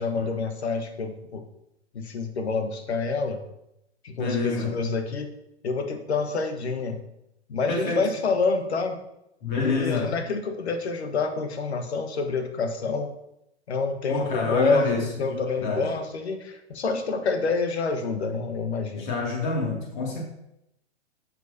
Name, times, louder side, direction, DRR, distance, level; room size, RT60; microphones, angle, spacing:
voice 1, 0.0-1.4 1.9-3.4 4.0-5.3 5.6-7.0 7.5-9.0 9.5-13.1 13.7-19.1, left 4 dB, 70° left, 7 dB, 1.4 m, -27 dB
voice 2, 4.2-4.8 7.7-8.1 9.4-10.2 14.1-15.9 19.0-20.2, left 3 dB, 45° left, -1 dB, 2.6 m, -28 dB
10.5 x 7.1 x 2.8 m, 0.82 s
figure-of-eight pair, 120°, 34 cm